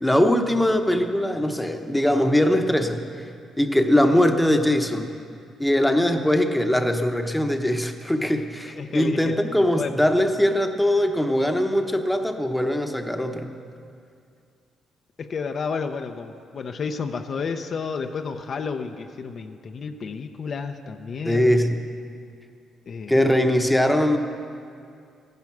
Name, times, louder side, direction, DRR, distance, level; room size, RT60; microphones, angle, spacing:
voice 1, 0.0-3.3 3.6-5.1 5.6-13.5 21.2-21.8 23.1-24.2, left 1 dB, 5° left, 5 dB, 1.0 m, -21 dB
voice 2, 8.7-9.9 15.2-21.5 22.9-23.2, left 5 dB, 50° left, 6 dB, 0.7 m, -31 dB
15.0 x 11.0 x 5.9 m, 2.4 s
cardioid pair, 90°, 0 cm